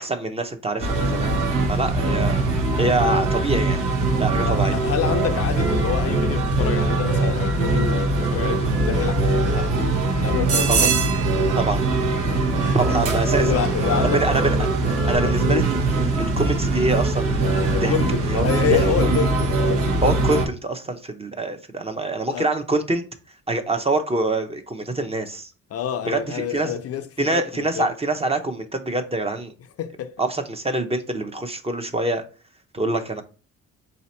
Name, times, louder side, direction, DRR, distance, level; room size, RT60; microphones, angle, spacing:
voice 1, 0.0-1.4 1.7-3.8 4.2-4.8 10.7-10.9 11.6-11.8 12.7-13.5 14.0-14.6 15.1-18.0 18.2-19.2 20.0-23.0 23.5-25.5 26.0-26.7 27.2-29.5 30.2-32.2 32.7-33.2, right 2 dB, 20° right, 0.6 m, -25 dB
sound 1, 0.8-20.5, right 2 dB, 85° right, 1.1 m, -21 dB
voice 2, 4.4-11.0 12.6-13.0 13.2-14.2 15.1-15.7 17.7-19.9 22.3-22.5 25.7-27.9 29.8-30.1, left 9 dB, 50° left, 0.5 m, -28 dB
sound 2, 8.9-15.1, right 5 dB, 55° right, 0.7 m, -36 dB
4.0 x 2.8 x 4.2 m
cardioid pair, 90°, 30 cm